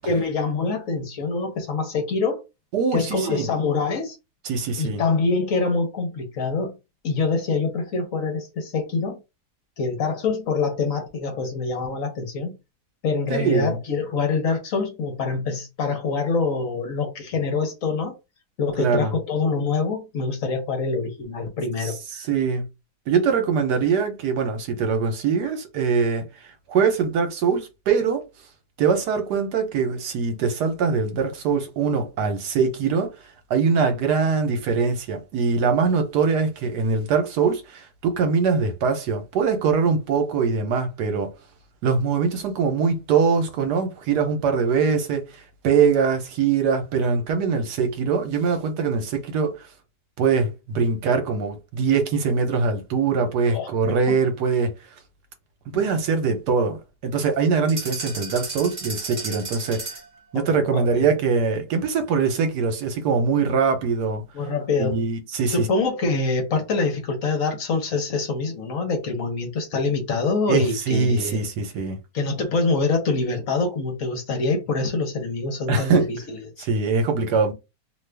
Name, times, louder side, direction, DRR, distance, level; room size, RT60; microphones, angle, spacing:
voice 1, 0.1-2.4 2.9-4.2 4.8-6.8 7.0-9.2 9.8-12.5 13.0-18.1 18.6-22.3 53.4-53.7 54.1-54.2 60.3-60.4 60.7-61.1 64.3-65.0 65.5-71.4 72.1-76.7, left 4 dB, 60° left, 1.1 m, -25 dB
voice 2, 2.7-3.5 4.4-5.0 13.3-13.8 18.8-19.1 21.8-22.6 23.1-26.3 26.7-28.3 28.8-33.1 33.5-41.3 41.8-49.7 50.2-54.7 55.7-59.9 60.3-64.2 64.8-65.7 70.5-72.0 75.7-76.1 76.6-77.5, right 5 dB, 80° right, 1.3 m, -22 dB
sound 1, 57.7-60.2, right 3 dB, 30° right, 1.0 m, -33 dB
2.9 x 2.4 x 3.2 m
omnidirectional pair, 1.7 m